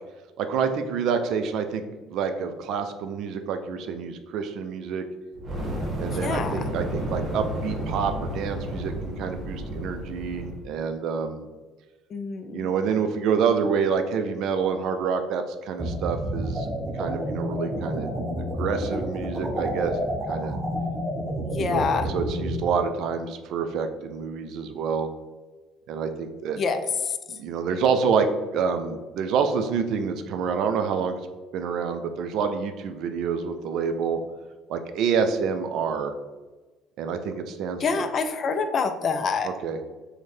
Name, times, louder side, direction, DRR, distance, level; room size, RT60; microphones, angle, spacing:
voice 1, 0.4-1.8 2.1-5.1 6.0-11.5 12.5-16.7 16.9-18.1 18.4-19.9 20.3-20.6 21.6-21.8 22.1-25.1 25.9-26.6 27.4-31.2 31.5-34.2 34.7-36.1 37.0-38.0 39.4-39.8, right 6 dB, 55° right, 8 dB, 0.3 m, -27 dB
Fire, 5.3-10.6, equal, 40° right, 0.9 m, -32 dB
voice 2, 6.2-6.7 12.1-12.7 21.5-22.1 26.6-27.4 37.8-39.5, left 5 dB, 45° left, 8 dB, 0.3 m, -27 dB
sound 1, 15.8-22.6, equal, 15° right, 0.6 m, -29 dB
3.0 x 2.1 x 4.1 m, 1.2 s
figure-of-eight pair, 55°, 0 cm